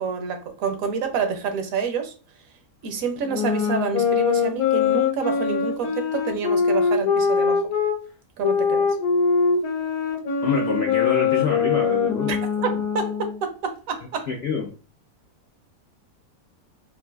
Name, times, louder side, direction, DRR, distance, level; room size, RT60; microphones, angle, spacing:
voice 1, 0.0-2.1 2.8-7.7 8.4-9.0 12.3-12.4 12.6-14.3, right 5 dB, 70° right, 6 dB, 1.0 m, -28 dB
sound 1, 3.3-8.0 8.4-13.4, left 6 dB, 90° left, 1.1 m, -22 dB
voice 2, 10.4-12.4 12.7-12.8 14.3-14.7, left 5 dB, 70° left, 1 dB, 0.6 m, -26 dB
3.8 x 2.5 x 2.2 m, 0.35 s
omnidirectional pair, 1.6 m